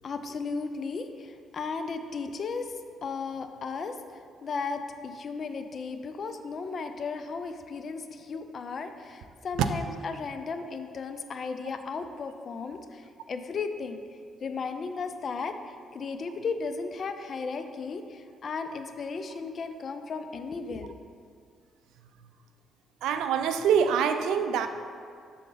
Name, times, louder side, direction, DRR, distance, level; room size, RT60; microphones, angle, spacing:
voice 1, 0.0-2.7 3.0-4.0 4.4-14.0 14.4-15.6 15.9-20.9, left 4 dB, 50° left, 8 dB, 0.4 m, -35 dB
voice 2, 23.0-24.7, right 7 dB, 90° right, 9 dB, 0.3 m, -24 dB
6.6 x 3.7 x 3.8 m, 2.2 s
cardioid pair, 90°, 0 cm